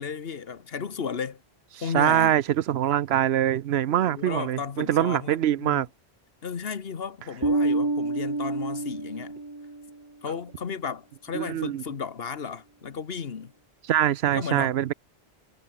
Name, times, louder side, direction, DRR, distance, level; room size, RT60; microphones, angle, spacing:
voice 1, 0.0-1.4 1.8-2.4 3.9-5.8 6.4-9.3 10.2-13.5 14.3-14.9, left 6 dB, 70° left, 1.4 m, -34 dB
voice 2, 1.9-5.9 11.3-11.8 13.9-14.9, right 11 dB, 85° right, 0.9 m, -23 dB
Bass guitar, 7.4-9.9, right 2 dB, 20° right, 1.3 m, -27 dB
omnidirectional pair, 1.0 m